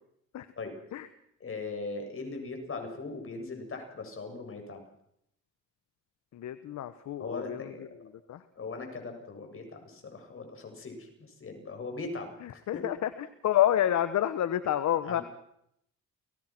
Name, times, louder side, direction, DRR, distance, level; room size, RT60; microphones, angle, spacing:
voice 1, 1.4-4.8 7.2-7.9 8.6-12.9 15.0-15.2, left 3 dB, 45° left, 4 dB, 7.5 m, -40 dB
voice 2, 6.3-7.9 8.3-8.4 12.4-13.1 13.4-15.2, left 11 dB, 65° left, 12 dB, 1.3 m, -28 dB
30.0 x 19.0 x 6.2 m, 0.75 s
cardioid pair, 90°, 30 cm